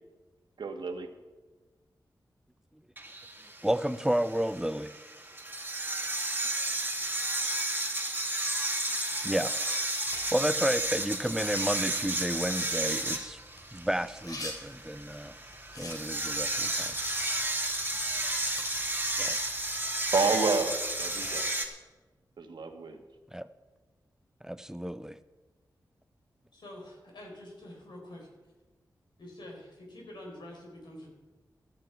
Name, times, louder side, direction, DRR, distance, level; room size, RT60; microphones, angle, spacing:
voice 1, 0.6-1.1 20.1-21.5 22.4-23.0, right 4 dB, 75° right, 5 dB, 1.5 m, -29 dB
sound 1, 3.0-21.7, right 2 dB, 25° right, 2.2 m, -32 dB
voice 2, 3.6-4.9 9.2-9.5 10.3-13.4 13.7-15.3 15.8-16.9 19.2-19.4 23.3-23.5 24.4-25.2, equal, 5° right, 12 dB, 0.7 m, -31 dB
sound 2, 10.0-21.5, left 1 dB, 55° left, 3.3 m, -48 dB
voice 3, 26.5-28.3 29.2-31.1, left 1 dB, 75° left, 0 dB, 4.4 m, -46 dB
13.5 x 13.0 x 4.6 m, 1.2 s
cardioid pair, 45°, 8 cm